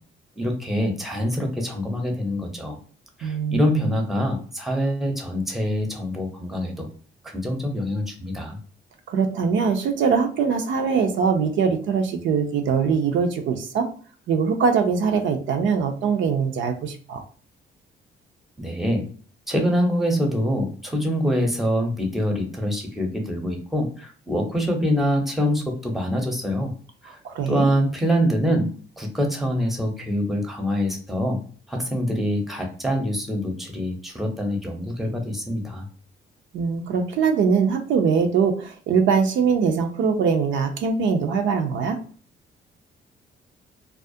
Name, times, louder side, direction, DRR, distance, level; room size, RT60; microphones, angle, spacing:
voice 1, 0.4-2.8 3.2-6.9 7.2-8.6 18.6-19.0 19.5-26.7 27.0-27.2 27.5-28.7 29.0-31.4 31.7-35.9, equal, ahead, 2 dB, 0.6 m, -25 dB
voice 2, 3.2-3.9 9.1-13.8 14.3-17.2 27.2-27.7 36.5-42.0, right 6 dB, 70° right, 4 dB, 0.4 m, -22 dB
2.3 x 2.0 x 2.6 m, 0.43 s
cardioid pair, 90°, 20 cm